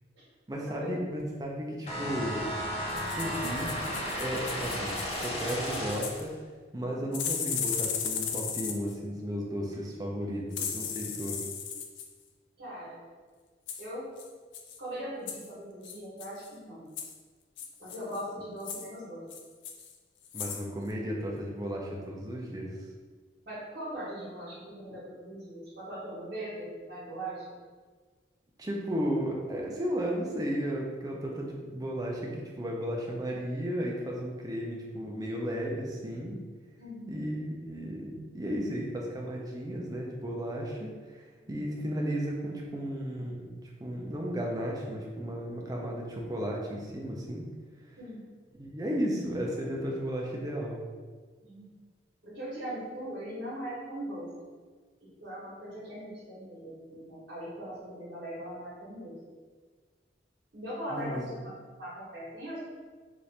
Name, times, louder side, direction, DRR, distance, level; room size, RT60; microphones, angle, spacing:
voice 1, 0.5-2.4 3.1-3.7 4.2-6.3 6.7-11.4 20.3-22.8 28.6-36.4 37.1-43.5 43.8-47.4 48.5-50.8 60.9-61.2, equal, 20° right, -2 dB, 0.4 m, -34 dB
sound 1, 1.9-6.3, equal, 35° left, 0.5 m, -34 dB
sound 2, 2.9-6.2 7.1-9.0 10.5-12.1 13.7-13.9 14.2-14.3 14.5-14.8 15.3-15.5 15.8-16.5 17.0-17.1 17.6-18.2 18.6-18.9 19.3-19.9 20.2-20.6 20.9-21.0, left 7 dB, 80° left, 0.4 m, -36 dB
voice 2, 12.6-13.0 13.8-14.1 14.8-16.9 17.8-19.2 23.4-27.6 36.8-37.2 41.4-41.7 48.0-48.2 51.4-51.7 52.2-54.3 55.2-59.1 60.5-61.5 61.8-62.6, right 1 dB, 80° right, -10 dB, 1.0 m, -40 dB
2.8 x 2.5 x 3.2 m, 1.5 s
head